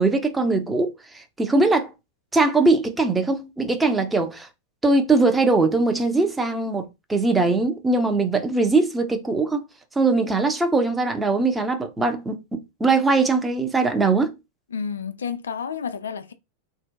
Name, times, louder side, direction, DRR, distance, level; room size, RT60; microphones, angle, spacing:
voice 1, 0.0-1.9 2.3-4.5 4.8-9.7 10.0-14.3, right 3 dB, 10° right, 0.5 m, -21 dB
voice 2, 14.7-16.3, left 6 dB, 70° left, 0.3 m, -30 dB
2.5 x 2.1 x 2.4 m
figure-of-eight pair, 90°, 0 cm